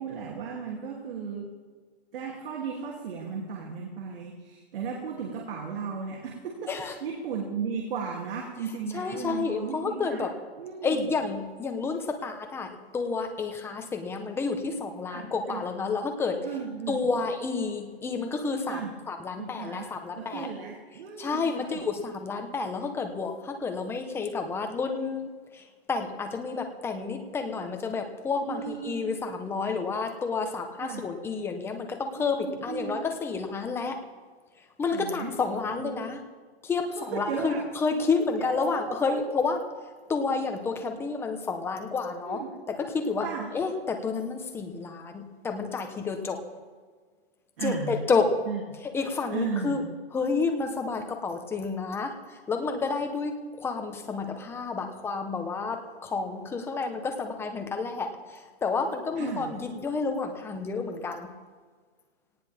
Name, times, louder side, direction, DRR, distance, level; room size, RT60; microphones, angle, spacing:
voice 1, 0.0-1.5 2.1-10.3 10.6-11.1 15.1-15.6 16.4-17.1 18.7-19.0 19.4-19.9 20.2-21.9 28.5-29.2 30.8-31.1 32.2-33.0 34.9-35.3 35.7-36.1 36.9-37.7 38.4-39.2 42.2-42.5 43.2-43.5 47.6-48.0 48.4-48.6 49.3-49.8 59.2-59.5, right 6 dB, 60° right, -1 dB, 3.1 m, -35 dB
voice 2, 8.9-10.3 10.8-16.4 16.9-18.8 19.1-20.5 21.2-25.6 25.9-34.0 34.8-36.2 36.6-39.6 40.1-42.4 42.7-43.3 43.5-46.4 47.6-48.3 48.9-49.8 50.1-52.1 52.5-58.1 58.6-61.3, left 4 dB, 5° left, 5 dB, 1.0 m, -30 dB
18.5 x 17.5 x 3.6 m, 1.5 s
hypercardioid pair, 160°, 31 cm